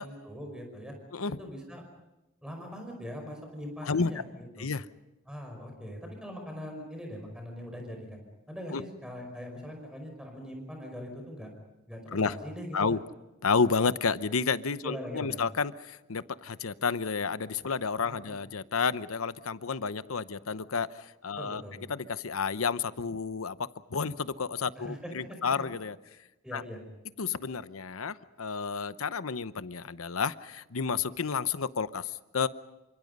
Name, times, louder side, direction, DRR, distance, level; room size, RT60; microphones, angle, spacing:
voice 1, 0.0-0.9 1.4-1.8 2.4-4.3 4.6-4.7 5.3-8.2 8.5-11.5 11.9-13.0 14.8-15.4 18.1-18.3 21.4-21.8 24.8-25.4 26.4-26.8, equal, 5° right, 3 dB, 5.3 m, -41 dB
voice 2, 13.4-21.6 21.9-23.6 23.9-26.0 26.5-26.6 27.2-32.5, left 5 dB, 85° left, 14 dB, 0.8 m, -31 dB
28.0 x 26.0 x 5.4 m, 1.0 s
head